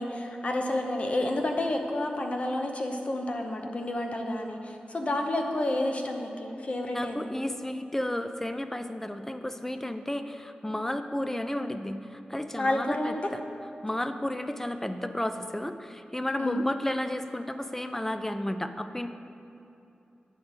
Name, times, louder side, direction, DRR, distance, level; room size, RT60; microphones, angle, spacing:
voice 1, 0.0-7.3 12.6-13.2 16.4-16.6, left 1 dB, 45° left, 3 dB, 0.8 m, -30 dB
voice 2, 6.9-13.4 13.8-19.1, left 1 dB, 10° left, 9 dB, 0.4 m, -32 dB
8.8 x 3.8 x 6.3 m, 2.8 s
cardioid pair, 65°, 3 cm